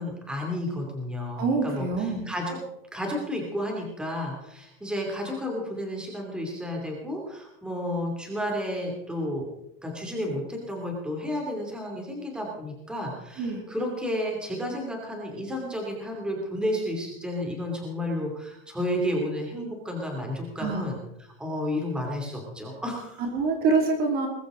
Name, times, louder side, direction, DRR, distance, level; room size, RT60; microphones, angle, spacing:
voice 1, 0.0-2.6 2.9-9.5 9.8-23.2, left 1 dB, 5° right, 0 dB, 2.7 m, -32 dB
voice 2, 1.4-2.3 13.4-13.6 20.6-20.9 23.2-24.3, right 4 dB, 30° right, 3 dB, 2.6 m, -25 dB
20.5 x 14.5 x 3.8 m, 0.83 s
supercardioid pair, 175°, 31 cm